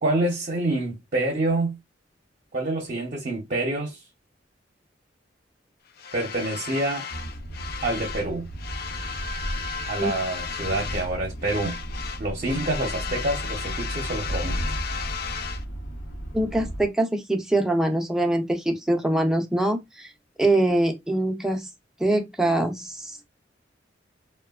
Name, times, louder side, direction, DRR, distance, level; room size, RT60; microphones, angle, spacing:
voice 1, 0.0-1.8 2.5-4.0 6.1-7.1 7.8-8.5 9.9-11.7 12.2-14.8, right 2 dB, 45° right, 0.7 m, -27 dB
sound 1, 6.0-8.3 8.6-11.2 11.4-15.6, left 6 dB, 55° left, 0.4 m, -35 dB
sound 2, 7.1-16.9, right 1 dB, 75° left, 0.9 m, -34 dB
voice 2, 16.3-20.1 20.4-21.7 22.0-23.2, right 1 dB, 5° right, 0.5 m, -23 dB
3.0 x 2.2 x 2.3 m
head